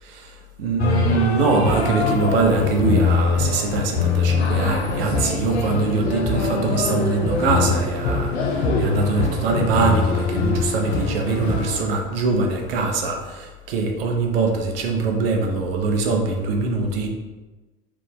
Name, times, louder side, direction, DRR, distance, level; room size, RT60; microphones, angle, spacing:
voice 1, 0.6-17.1, right 3 dB, 65° right, 2 dB, 0.6 m, -22 dB
sound 1, 0.8-11.9, left 4 dB, 75° left, 0.5 m, -23 dB
2.9 x 2.5 x 3.6 m, 1.2 s
figure-of-eight pair, 70°, 32 cm